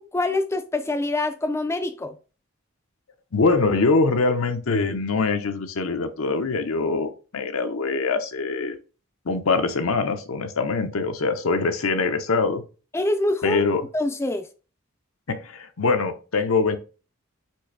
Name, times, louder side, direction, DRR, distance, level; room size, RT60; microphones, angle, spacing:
voice 1, 0.0-2.2 12.9-13.6 13.9-14.5, left 2 dB, 15° left, 0.4 m, -25 dB
voice 2, 3.3-8.8 9.3-12.6 13.4-13.8 15.3-16.8, left 4 dB, 80° left, 0.7 m, -23 dB
4.5 x 2.6 x 4.5 m
head